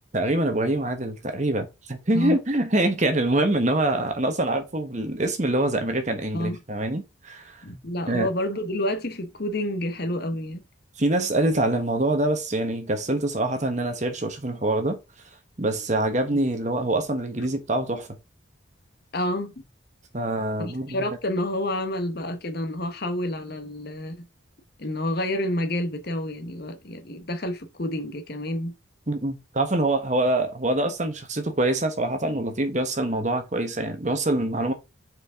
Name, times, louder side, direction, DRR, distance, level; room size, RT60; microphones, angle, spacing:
voice 1, 0.1-7.6 8.1-8.3 11.0-15.0 15.6-18.1 20.1-21.0 29.1-34.7, right 1 dB, 35° right, 1.2 m, -25 dB
voice 2, 7.6-10.6 19.1-19.5 20.6-24.3 24.8-28.7, left 1 dB, 50° left, 1.0 m, -29 dB
6.1 x 4.8 x 3.7 m
head